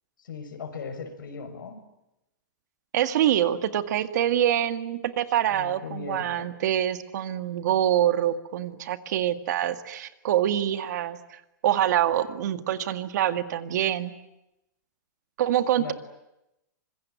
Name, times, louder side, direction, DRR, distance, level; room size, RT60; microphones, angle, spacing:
voice 1, 0.2-1.8 5.5-6.5 15.8-15.9, left 5 dB, 85° left, 7 dB, 6.3 m, -38 dB
voice 2, 2.9-14.1 15.4-15.9, right 11 dB, 60° right, 9 dB, 2.0 m, -25 dB
25.5 x 22.5 x 9.3 m, 0.90 s
hypercardioid pair, 155°, 11 cm